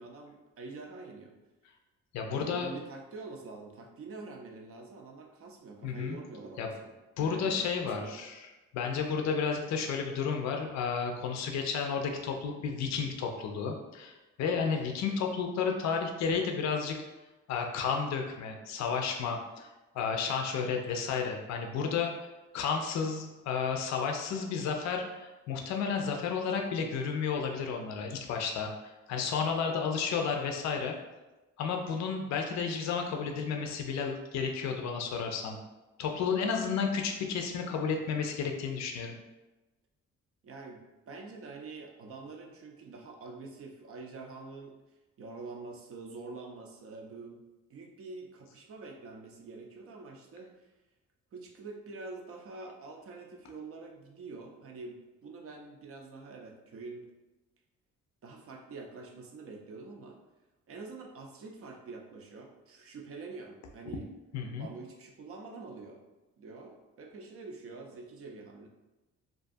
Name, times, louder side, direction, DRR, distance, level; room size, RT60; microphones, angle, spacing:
voice 1, 0.0-1.4 2.3-8.2 40.4-44.7 45.2-50.7 51.3-57.1 58.2-60.2 60.7-64.1 64.6-66.0 66.4-68.7, right 3 dB, 50° right, 1 dB, 0.5 m, -46 dB
voice 2, 2.1-2.7 5.8-6.2 6.6-6.7 7.2-8.4 8.7-17.0 17.5-19.7 19.9-22.1 22.5-28.7 29.1-31.0 31.6-35.6 36.0-39.1 64.3-64.7, left 6 dB, 65° left, 2 dB, 0.5 m, -32 dB
2.5 x 2.3 x 2.5 m, 1.1 s
cardioid pair, 90°, 30 cm